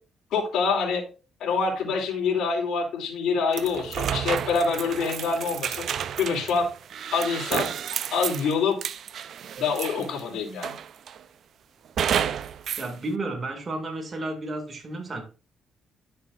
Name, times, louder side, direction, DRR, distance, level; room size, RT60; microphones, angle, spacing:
voice 1, 0.3-1.0 1.4-5.9 6.2-6.7 7.1-7.7 8.1-8.7 9.6-10.7, left 5 dB, 75° left, 2.9 m, -26 dB
sound 1, 3.5-10.2 10.6-11.2 12.0-12.9, right 8 dB, 65° right, 0.5 m, -31 dB
voice 2, 12.8-15.2, right 2 dB, 35° right, 2.2 m, -32 dB
11.0 x 6.6 x 2.5 m
cardioid pair, 90°, 0 cm